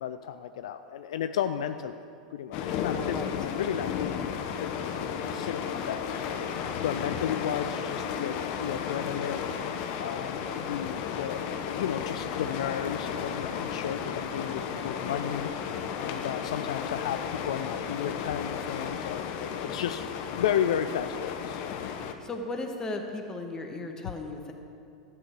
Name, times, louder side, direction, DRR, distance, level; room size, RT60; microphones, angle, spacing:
voice 1, 0.0-6.1 6.8-9.5 10.0-20.1 20.3-21.9, left 9 dB, 65° left, 9 dB, 0.4 m, -33 dB
sound 1, 2.5-22.1, left 7 dB, 50° left, 0.8 m, -34 dB
voice 2, 22.0-24.5, left 2 dB, 20° left, 3 dB, 1.4 m, -36 dB
12.5 x 9.1 x 4.6 m, 2.6 s
figure-of-eight pair, 90°, 3 cm